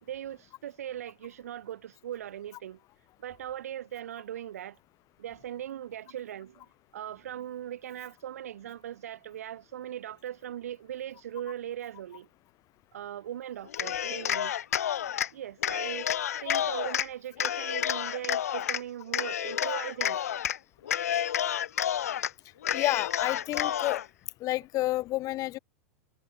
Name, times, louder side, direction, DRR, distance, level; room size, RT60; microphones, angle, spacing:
voice 1, 0.0-2.8 3.2-4.8 5.2-6.6 6.9-12.3 12.9-14.6 15.3-16.1 16.4-20.2, right 11 dB, 75° right, 1.6 m, -39 dB
Cheering, 13.7-15.3 15.6-17.1 17.4-18.8 19.1-20.6 20.8-22.3 22.6-24.0, left 10 dB, 80° left, 0.7 m, -30 dB
voice 2, 22.7-24.0 24.4-25.6, left 17 dB, 45° left, 1.8 m, -30 dB
hypercardioid pair, 95°, 8 cm